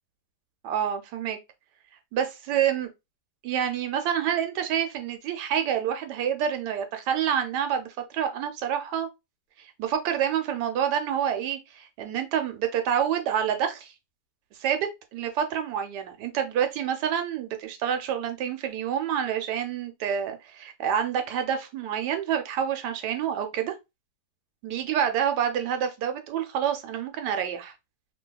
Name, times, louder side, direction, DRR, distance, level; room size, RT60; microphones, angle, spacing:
voice 1, 0.6-1.4 2.1-2.9 3.4-9.1 9.8-13.9 14.6-23.7 24.6-27.7, right 9 dB, 80° right, 1.2 m, -28 dB
2.8 x 2.6 x 2.2 m
omnidirectional pair, 1.8 m